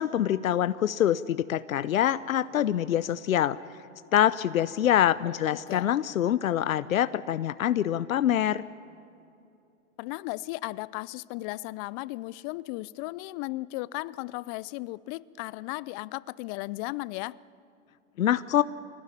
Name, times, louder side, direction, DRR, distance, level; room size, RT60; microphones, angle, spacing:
voice 1, 0.0-3.6 4.1-8.7 18.2-18.6, left 11 dB, 85° left, 0.7 m, -25 dB
voice 2, 10.0-17.4, left 20 dB, 40° left, 0.5 m, -36 dB
25.0 x 17.5 x 9.9 m
hypercardioid pair, 110°, 40 cm